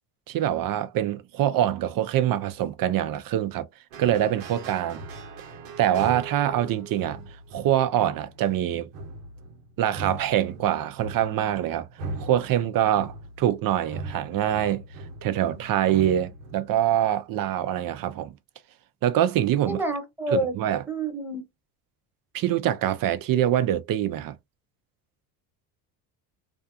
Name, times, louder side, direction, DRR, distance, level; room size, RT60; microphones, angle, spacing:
voice 1, 0.3-3.7 4.0-5.0 5.8-7.2 7.5-8.9 9.8-11.9 12.2-14.8 15.2-18.3 19.0-19.8 20.3-20.8 22.3-24.4, right 11 dB, 45° right, 0.6 m, -24 dB
sound 1, 3.9-17.1, right 3 dB, 80° right, 0.9 m, -40 dB
voice 2, 19.7-20.6 20.9-21.4, right 1 dB, 5° right, 1.1 m, -28 dB
2.6 x 2.3 x 2.5 m
supercardioid pair, 75°, 47 cm